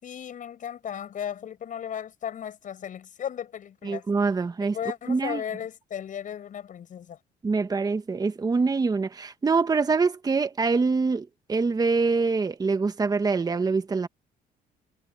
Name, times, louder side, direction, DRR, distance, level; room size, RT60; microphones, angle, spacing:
voice 1, 0.0-4.0 4.6-7.2, left 9 dB, 50° left, 7.3 m, -35 dB
voice 2, 3.8-4.7 5.1-5.4 7.4-14.1, right 4 dB, 20° right, 1.4 m, -25 dB
cardioid pair, 110°, 17 cm